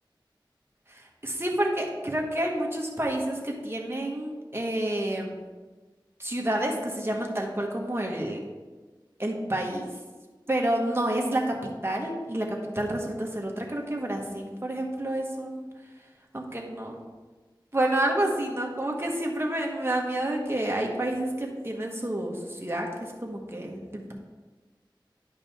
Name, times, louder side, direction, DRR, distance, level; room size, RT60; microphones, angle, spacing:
voice 1, 0.9-5.4 6.2-8.4 9.2-9.9 10.5-15.7 16.3-17.0 17.7-24.1, right 1 dB, 30° right, 0 dB, 1.5 m, -29 dB
11.0 x 5.3 x 3.6 m, 1.3 s
wide cardioid pair, 45°, 8 cm